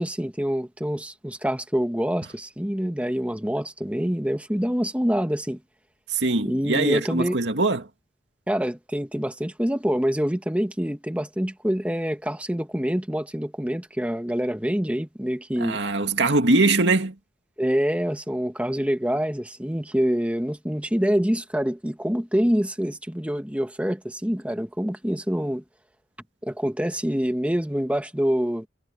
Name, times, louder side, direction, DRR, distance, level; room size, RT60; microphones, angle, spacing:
voice 1, 0.0-5.6 6.4-7.4 8.5-15.8 17.6-25.6 26.4-28.7, equal, 5° right, 1.4 m, -26 dB
voice 2, 6.1-7.9 15.6-17.1, right 2 dB, 70° right, 2.3 m, -22 dB
head